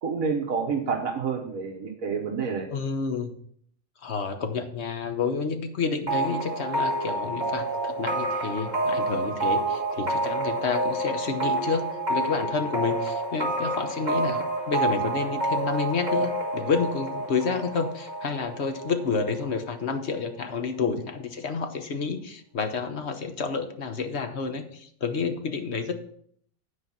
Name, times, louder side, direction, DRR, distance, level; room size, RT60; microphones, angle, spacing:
voice 1, 0.0-2.7 20.8-21.0, right 5 dB, 70° right, 0 dB, 1.5 m, -29 dB
voice 2, 2.7-3.3 4.0-25.9, left 5 dB, 50° left, 7 dB, 1.2 m, -29 dB
sound 1, 6.1-19.6, right 2 dB, 30° right, 2.3 m, -28 dB
9.8 x 4.7 x 7.1 m, 0.64 s
omnidirectional pair, 1.5 m